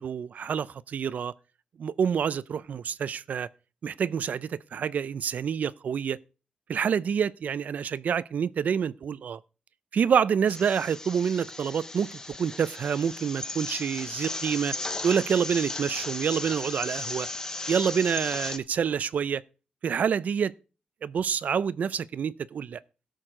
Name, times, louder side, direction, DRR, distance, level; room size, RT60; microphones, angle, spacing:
voice 1, 0.0-1.3 1.8-3.5 3.8-6.2 6.7-9.4 9.9-14.7 15.0-17.3 17.7-19.4 19.8-20.5 21.0-22.8, right 7 dB, 65° right, 0.5 m, -27 dB
sound 1, 10.5-18.6, left 2 dB, 20° left, 0.9 m, -36 dB
17.0 x 6.4 x 3.8 m
wide cardioid pair, 155°, 3 cm